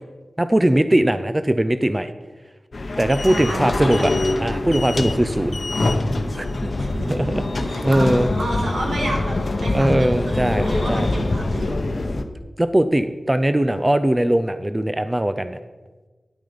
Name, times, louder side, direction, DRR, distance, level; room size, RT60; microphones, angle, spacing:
voice 1, 0.4-2.1 3.0-4.1 4.4-5.6 6.3-6.7 7.0-7.3 7.8-8.3 9.7-11.1 12.6-15.6, right 1 dB, 20° right, 11 dB, 0.5 m, -20 dB
sound 1, 2.7-12.2, left 2 dB, 55° left, 0.8 m, -24 dB
voice 2, 3.3-4.2 6.8-9.3 9.6-11.7, right 1 dB, 85° right, -2 dB, 2.9 m, -30 dB
10.0 x 9.1 x 5.1 m, 1.3 s
wide cardioid pair, 70°, 0 cm